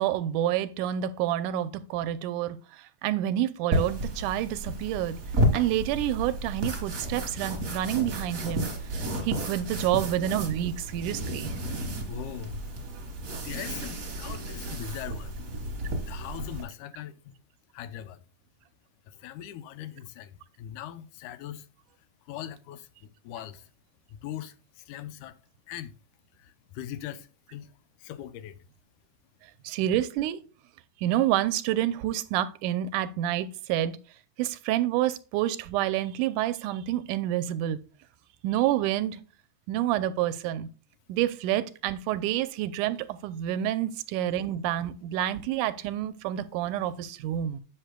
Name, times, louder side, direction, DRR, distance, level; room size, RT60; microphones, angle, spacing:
voice 1, 0.0-5.2 5.5-11.6 29.6-30.4 31.0-34.0 34.4-37.8 38.4-39.2 39.7-40.7 41.1-47.6, right 12 dB, 90° right, 2.2 m, -28 dB
sound 1, 3.7-16.6, right 1 dB, 35° right, 1.4 m, -32 dB
voice 2, 12.1-12.6 13.4-15.4 16.1-17.3 17.7-18.2 19.1-21.7 22.3-23.7 24.1-25.4 25.7-26.0 26.4-27.7 28.0-28.6, left 11 dB, 85° left, 2.1 m, -40 dB
9.9 x 7.8 x 2.2 m
omnidirectional pair, 3.6 m